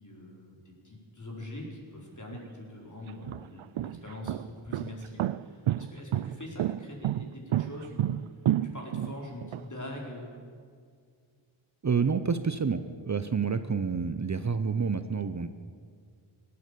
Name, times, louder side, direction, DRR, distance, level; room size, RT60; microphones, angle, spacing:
voice 1, 0.0-8.2 8.6-10.4, left 1 dB, 40° left, -1 dB, 4.6 m, -43 dB
sound 1, 2.3-2.4 3.1-9.6, right 12 dB, 75° right, 0.5 m, -30 dB
voice 2, 11.8-15.5, right 5 dB, 35° right, 10 dB, 0.8 m, -28 dB
17.5 x 9.6 x 8.4 m, 2.1 s
cardioid pair, 55°, 48 cm